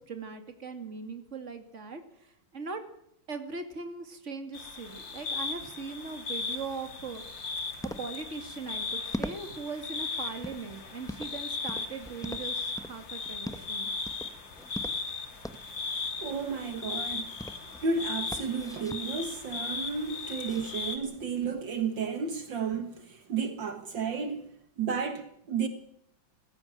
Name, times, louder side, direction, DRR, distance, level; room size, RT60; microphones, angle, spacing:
voice 1, 0.0-2.0 2.5-2.8 3.3-7.5 7.8-13.9, right 4 dB, 35° right, 2.8 m, -40 dB
sound 1, 4.5-21.0, left 4 dB, 65° left, 3.1 m, -37 dB
sound 2, 6.9-21.6, equal, 5° left, 0.5 m, -44 dB
voice 2, 16.2-17.3 17.6-24.5 24.8-25.7, right 5 dB, 65° right, 2.2 m, -32 dB
21.0 x 16.0 x 9.0 m
omnidirectional pair, 2.2 m